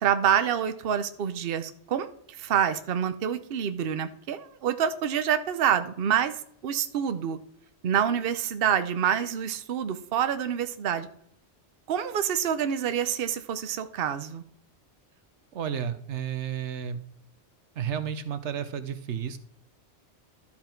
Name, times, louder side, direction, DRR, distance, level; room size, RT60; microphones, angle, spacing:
voice 1, 0.0-2.1 2.4-7.4 7.8-11.1 11.9-14.4, right 8 dB, 60° right, 10 dB, 0.9 m, -27 dB
voice 2, 15.5-17.0 17.8-19.4, right 8 dB, 85° right, 11 dB, 1.1 m, -32 dB
12.5 x 5.8 x 4.4 m, 0.67 s
omnidirectional pair, 1.1 m